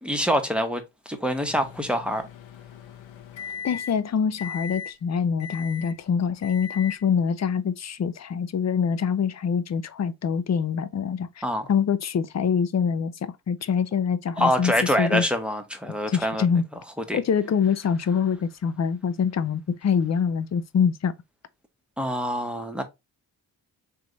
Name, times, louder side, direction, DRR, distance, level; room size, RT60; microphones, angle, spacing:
voice 1, 0.0-2.3 11.4-11.7 14.4-16.5 17.1-17.2 22.0-22.8, equal, ahead, 0.9 m, -25 dB
Microwave oven, 1.5-4.1 4.4-4.9 5.4-6.0 6.4-7.0, left 7 dB, 80° left, 0.9 m, -38 dB
voice 2, 3.6-11.4 11.7-14.7 15.0-15.3 16.1-16.6 17.1-21.1, left 7 dB, 35° left, 0.6 m, -25 dB
3.4 x 3.1 x 3.8 m
cardioid pair, 75°, 45 cm